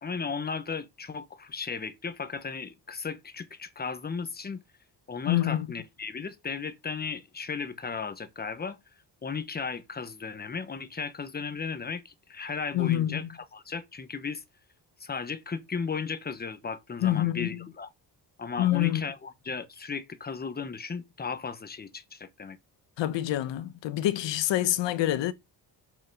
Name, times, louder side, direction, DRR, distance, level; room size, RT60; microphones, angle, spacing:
voice 1, 0.0-4.6 5.1-8.8 9.2-14.4 15.0-17.9 18.4-22.6, left 5 dB, 20° left, 1.1 m, -35 dB
voice 2, 5.3-5.7 12.7-13.3 17.0-17.7 18.6-19.0 23.0-25.3, left 13 dB, 85° left, 1.1 m, -26 dB
7.0 x 5.8 x 6.2 m
cardioid pair, 140°, 42 cm